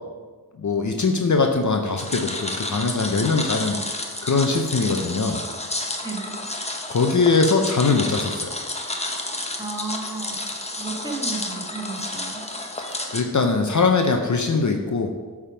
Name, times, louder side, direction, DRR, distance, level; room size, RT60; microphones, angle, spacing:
voice 1, 0.6-3.8 4.2-5.4 6.9-8.5 12.8-15.3, left 4 dB, 50° left, 3 dB, 0.7 m, -21 dB
sound 1, 2.0-13.2, left 2 dB, 15° left, 0.9 m, -31 dB
voice 2, 6.0-6.4 9.6-12.4, right 3 dB, 10° right, -2 dB, 1.8 m, -33 dB
8.6 x 3.7 x 5.0 m, 1.4 s
wide cardioid pair, 55°, 38 cm